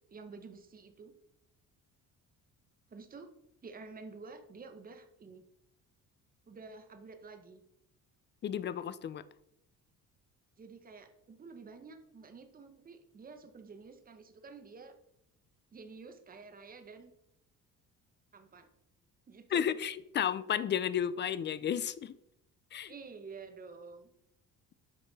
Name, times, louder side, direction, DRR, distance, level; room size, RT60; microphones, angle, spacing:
voice 1, 0.1-1.1 2.9-3.3 3.6-5.4 6.5-7.6 10.6-14.9 15.7-17.1 18.3-18.7 19.3-19.7 22.9-24.1, right 4 dB, 25° right, 7 dB, 0.9 m, -50 dB
voice 2, 8.4-9.2 19.5-22.1 22.7-22.9, left 9 dB, 35° left, 16 dB, 0.4 m, -32 dB
8.5 x 5.7 x 4.0 m, 0.79 s
cardioid pair, 135°, 33 cm